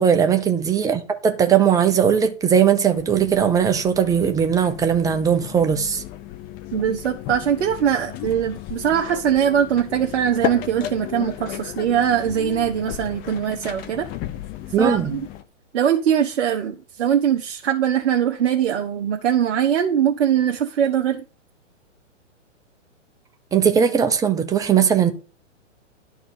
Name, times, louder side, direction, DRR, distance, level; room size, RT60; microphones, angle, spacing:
voice 1, 0.0-6.0 14.7-15.1 23.5-25.1, right 7 dB, 10° right, 0.8 m, -19 dB
sound 1, 2.9-15.4, left 11 dB, 25° left, 0.8 m, -34 dB
voice 2, 6.7-14.1 14.8-15.2 15.7-21.2, right 9 dB, 60° right, 1.2 m, -21 dB
11.5 x 4.5 x 6.8 m
hypercardioid pair, 135°, 38 cm